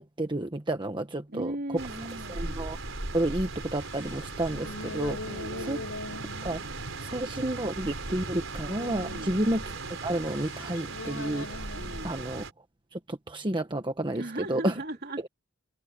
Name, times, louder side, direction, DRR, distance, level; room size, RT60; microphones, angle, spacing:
voice 1, 0.0-1.5 2.3-2.8 3.1-5.8 6.4-9.6 10.0-11.8 12.0-12.4 12.9-14.2 14.5-14.7, right 1 dB, 25° right, 1.2 m, -31 dB
voice 2, 1.3-2.7 5.3-5.9 9.0-9.4 11.7-12.3 14.1-15.3, right 1 dB, 50° right, 3.7 m, -38 dB
sound 1, 1.8-12.5, right 3 dB, 70° right, 5.0 m, -38 dB
Buddhist praying, 1.9-12.1, left 2 dB, 85° left, 5.3 m, -43 dB
head